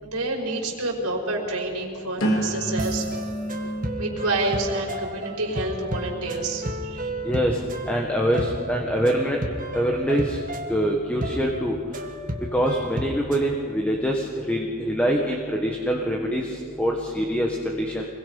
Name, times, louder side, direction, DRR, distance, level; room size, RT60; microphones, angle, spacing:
voice 1, 0.0-3.2 4.0-7.1, right 2 dB, 90° right, -1 dB, 5.2 m, -28 dB
sound 1, 2.2-8.0 8.6-9.0, right 1 dB, 65° left, 3.5 m, -32 dB
sound 2, 2.8-13.5, right 1 dB, 35° right, 1.7 m, -33 dB
voice 2, 7.2-7.6 7.9-9.4 9.7-10.4 10.7-11.7 12.5-18.1, equal, 5° left, 0 dB, 1.6 m, -24 dB
27.5 x 21.5 x 5.6 m, 2.2 s
head